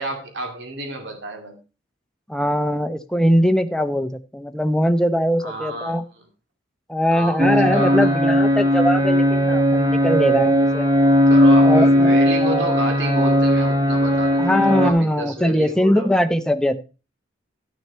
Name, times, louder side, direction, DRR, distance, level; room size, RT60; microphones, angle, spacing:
voice 1, 0.0-1.6 5.4-5.9 7.1-8.2 11.3-16.1, right 2 dB, 75° right, 3 dB, 2.4 m, -30 dB
voice 2, 2.3-6.0 6.9-10.9 11.6-12.1 12.4-12.7 14.4-16.8, equal, 5° left, 9 dB, 0.7 m, -21 dB
sound 1, 7.4-14.9, equal, 25° right, 1.5 m, -17 dB
12.0 x 6.5 x 4.3 m, 0.32 s
head